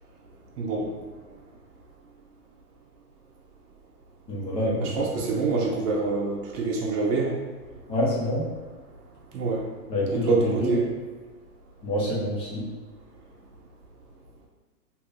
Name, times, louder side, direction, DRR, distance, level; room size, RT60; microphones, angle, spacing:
voice 1, 0.6-1.0 4.8-7.4 9.3-9.7 10.1-10.9, right 3 dB, 75° right, -2 dB, 0.8 m, -26 dB
voice 2, 4.3-4.9 7.9-8.4 9.9-10.3 10.6-10.7 11.8-12.6, left 1 dB, 10° left, -6 dB, 0.5 m, -26 dB
2.7 x 2.5 x 3.3 m, 1.4 s
hypercardioid pair, 135°, 48 cm